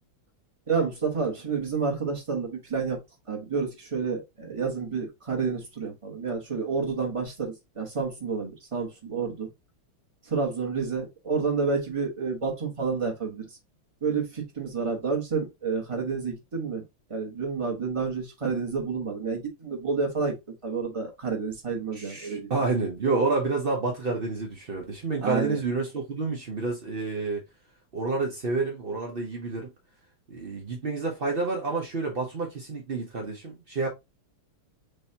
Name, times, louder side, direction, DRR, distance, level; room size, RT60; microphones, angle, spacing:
voice 1, 0.7-3.0 3.3-9.5 10.2-13.5 14.0-16.8 17.1-20.4 20.6-22.6 25.2-25.6, right 5 dB, 20° right, 1.0 m, -29 dB
voice 2, 21.9-27.4 27.9-29.7 30.3-33.9, right 3 dB, 60° right, 0.5 m, -29 dB
6.6 x 2.7 x 2.8 m
omnidirectional pair, 2.3 m